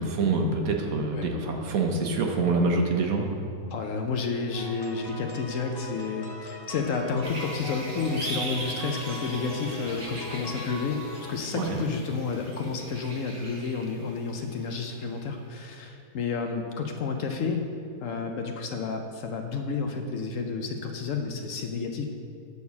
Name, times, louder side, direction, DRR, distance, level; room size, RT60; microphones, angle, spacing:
voice 1, 0.0-3.2 11.5-11.8, right 3 dB, 70° right, 2 dB, 1.3 m, -26 dB
voice 2, 3.7-17.7 18.0-22.1, left 4 dB, 65° left, 4 dB, 0.9 m, -31 dB
sound 1, 4.5-11.3, left 1 dB, 40° left, 0.3 m, -41 dB
sound 2, 7.2-14.8 15.1-15.2, right 2 dB, 40° right, 1.5 m, -40 dB
8.4 x 4.3 x 6.8 m, 2.4 s
omnidirectional pair, 1.6 m